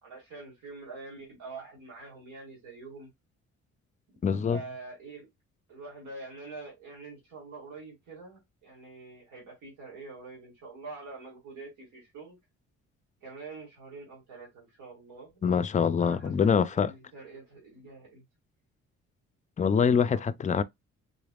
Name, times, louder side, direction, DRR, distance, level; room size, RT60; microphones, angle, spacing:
voice 1, 0.0-3.1 4.5-5.3 5.7-12.4 13.2-15.3 16.0-18.2 20.1-20.3, right 3 dB, 85° right, 2.2 m, -45 dB
voice 2, 4.2-4.6 15.4-16.9 19.6-20.6, left 6 dB, 25° left, 0.3 m, -24 dB
3.7 x 3.4 x 2.3 m
cardioid pair, 90°, 30 cm